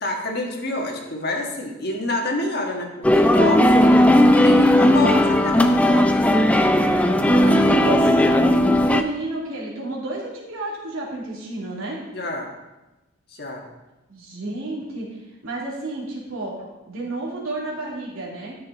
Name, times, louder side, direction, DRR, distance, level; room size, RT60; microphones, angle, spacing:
voice 1, 0.0-3.8 4.3-6.2 12.1-12.5 13.3-13.7, left 1 dB, 50° left, 1 dB, 1.6 m, -28 dB
sound 1, 3.0-9.0, left 1 dB, 5° left, 0.4 m, -16 dB
voice 2, 3.8-5.4 7.2-12.0 14.1-16.5 16.8-18.6, right 2 dB, 85° right, -4 dB, 2.9 m, -31 dB
12.5 x 6.7 x 4.1 m, 1.0 s
head